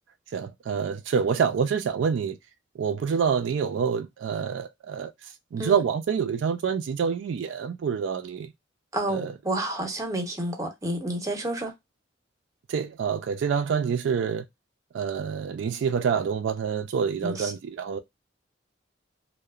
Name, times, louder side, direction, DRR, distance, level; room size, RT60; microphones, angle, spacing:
voice 1, 0.3-2.4 2.8-8.5 9.1-9.4 12.7-14.4 14.9-18.0, right 6 dB, 70° right, 0.3 m, -27 dB
voice 2, 8.9-11.7 17.2-17.5, right 1 dB, 15° right, 0.6 m, -30 dB
2.8 x 2.0 x 2.3 m
head